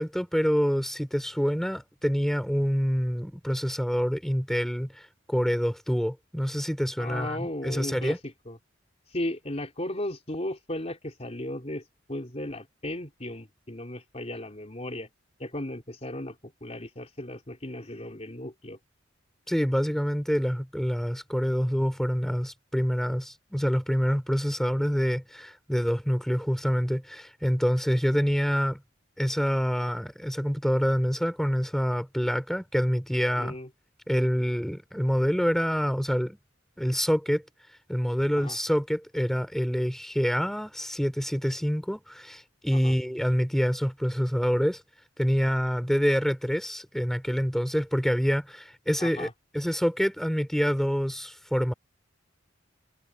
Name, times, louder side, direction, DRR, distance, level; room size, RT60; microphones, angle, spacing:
voice 1, 0.0-8.2 19.5-28.8 29.2-33.6 34.1-36.4 36.8-37.4 37.9-44.8 45.2-49.3 49.5-51.7, equal, ahead, 3.1 m, -26 dB
voice 2, 7.0-8.6 9.1-15.1 15.4-18.8 33.4-33.7 38.4-38.6 42.7-42.9 49.0-49.3, left 1 dB, 35° left, 3.6 m, -36 dB
head